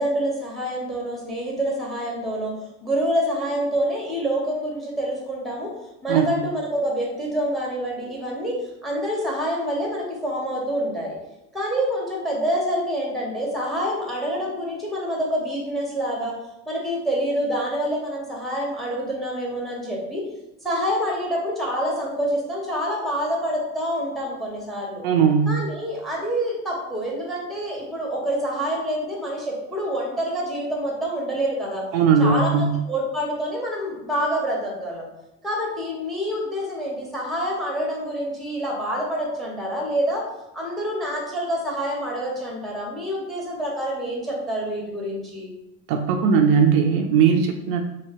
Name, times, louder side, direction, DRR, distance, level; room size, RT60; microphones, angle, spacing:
voice 1, 0.0-2.6 2.8-5.7 6.0-11.2 11.5-16.3 16.7-20.2 20.6-25.0 25.5-31.8 32.2-35.1 35.4-40.2 40.5-45.5, equal, ahead, -2 dB, 1.1 m, -27 dB
voice 2, 25.0-25.6 31.9-32.8 45.9-47.8, right 6 dB, 70° right, 4 dB, 0.5 m, -19 dB
2.9 x 2.8 x 2.9 m, 0.90 s
supercardioid pair, 90°, 38 cm